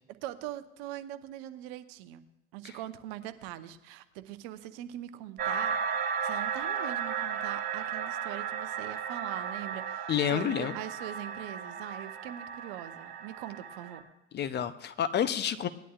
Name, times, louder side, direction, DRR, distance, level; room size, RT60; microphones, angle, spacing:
voice 1, 0.1-2.2 2.5-14.0, right 13 dB, 55° right, 11 dB, 0.9 m, -42 dB
sound 1, 5.4-14.0, right 7 dB, 25° right, 3.3 m, -35 dB
voice 2, 10.1-10.7 14.3-15.7, left 9 dB, 30° left, 11 dB, 0.7 m, -29 dB
18.5 x 11.0 x 2.4 m, 0.97 s
figure-of-eight pair, 75°, 36 cm